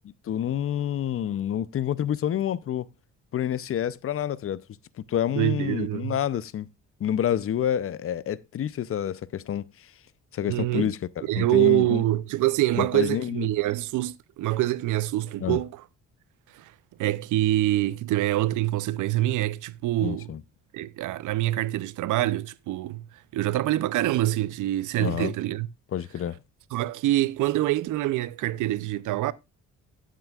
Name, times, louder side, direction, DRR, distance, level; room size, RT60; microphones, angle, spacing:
voice 1, 0.3-2.9 3.3-4.6 5.0-6.7 7.0-9.7 10.3-11.0 11.4-12.0 12.8-13.5 15.4-15.6 20.0-20.4 25.0-25.3 25.9-26.4, left 10 dB, 45° left, 0.6 m, -28 dB
voice 2, 5.3-6.1 10.4-10.9 11.2-15.8 16.5-16.7 17.0-20.3 20.7-23.0 23.3-25.7 26.7-29.3, right 15 dB, 80° right, 0.6 m, -25 dB
13.5 x 7.7 x 2.4 m
cardioid pair, 90°, 30 cm